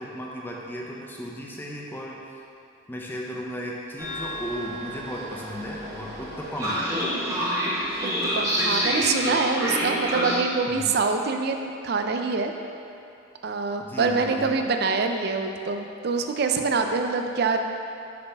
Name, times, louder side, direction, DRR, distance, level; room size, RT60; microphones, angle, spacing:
voice 1, 0.0-2.2 2.9-7.0 10.7-11.0 13.8-14.6, equal, 10° left, -3 dB, 0.6 m, -35 dB
Train, 4.0-10.4, equal, 15° right, 1.0 m, -28 dB
voice 2, 8.2-12.5 13.4-17.6, right 4 dB, 50° right, 5 dB, 0.4 m, -25 dB
5.6 x 4.0 x 5.4 m, 2.6 s
head